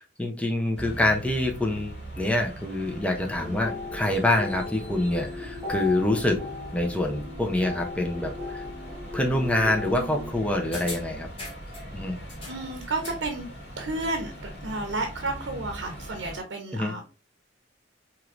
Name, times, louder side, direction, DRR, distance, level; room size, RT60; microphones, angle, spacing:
voice 1, 0.2-6.4 6.7-8.6 9.1-11.3 11.9-12.2 16.7-16.9, left 1 dB, 5° left, 1 dB, 0.5 m, -26 dB
sound 1, 0.7-16.4, right 1 dB, 70° left, 1.6 m, -41 dB
sound 2, 3.4-10.3, left 3 dB, 15° right, 1.9 m, -37 dB
sound 3, 10.7-11.9 12.3-13.3 13.6-13.7, left 2 dB, 30° left, 1.3 m, -41 dB
voice 2, 12.5-13.5 13.8-17.0, right 2 dB, 80° right, 4 dB, 0.6 m, -32 dB
4.6 x 2.9 x 2.4 m, 0.34 s
head